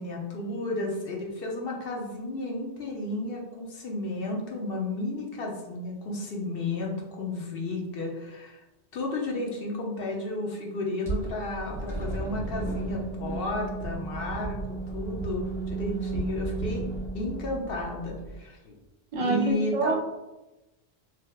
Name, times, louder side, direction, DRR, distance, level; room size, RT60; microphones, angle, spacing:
voice 1, 0.0-8.6 8.9-16.9 17.1-18.8 19.2-20.0, left 2 dB, 65° left, -1 dB, 0.8 m, -33 dB
sound 1, 11.0-18.4, right 3 dB, 5° left, 1.3 m, -34 dB
voice 2, 19.1-20.0, right 3 dB, 60° right, 2 dB, 0.3 m, -26 dB
3.2 x 2.8 x 2.3 m, 1.0 s
omnidirectional pair, 1.1 m